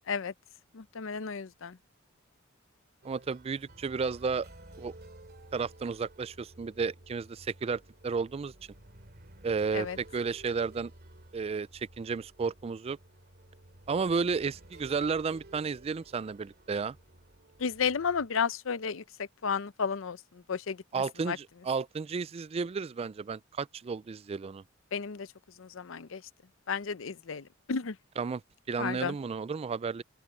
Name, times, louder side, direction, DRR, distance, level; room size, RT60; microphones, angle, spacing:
voice 1, 0.7-1.8 9.7-10.0 17.6-21.4 24.9-25.3 25.6-26.2 26.7-28.0 28.8-29.1, left 6 dB, 75° left, 0.6 m, -33 dB
voice 2, 3.0-4.5 4.8-4.9 5.5-8.5 9.4-10.9 11.3-13.0 13.9-17.0 20.9-24.6 28.2-28.4 28.7-30.0, right 5 dB, 30° right, 0.3 m, -32 dB
sound 1, 3.0-18.3, right 1 dB, 50° right, 2.6 m, -54 dB
open air
head